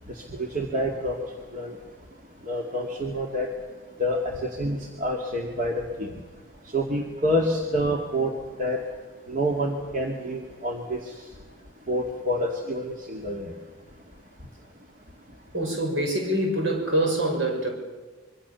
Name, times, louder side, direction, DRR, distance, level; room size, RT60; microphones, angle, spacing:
voice 1, 0.4-1.3 1.5-1.8 2.5-3.5 4.0-6.1 6.7-8.3 8.6-8.8 9.3-11.0 11.9-13.5, equal, 40° right, 1 dB, 2.3 m, -27 dB
voice 2, 15.5-17.7, right 1 dB, 65° right, 2 dB, 6.4 m, -25 dB
25.5 x 23.5 x 7.0 m, 1.3 s
head